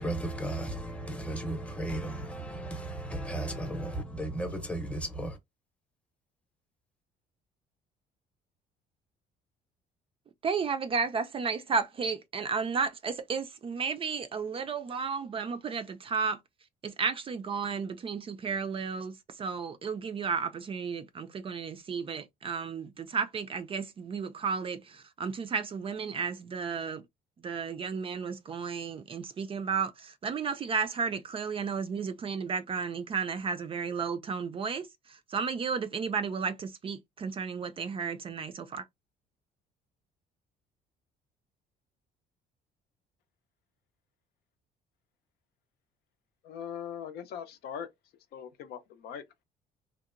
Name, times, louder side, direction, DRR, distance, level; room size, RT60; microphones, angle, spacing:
voice 1, 0.0-5.4, right 1 dB, 5° left, 0.7 m, -35 dB
voice 2, 10.4-16.4 16.8-27.0 27.4-38.8, right 5 dB, 35° right, 0.4 m, -33 dB
voice 3, 46.4-47.9 48.3-49.4, left 8 dB, 70° left, 0.6 m, -41 dB
2.8 x 2.1 x 2.4 m
cardioid pair, 110°, 17 cm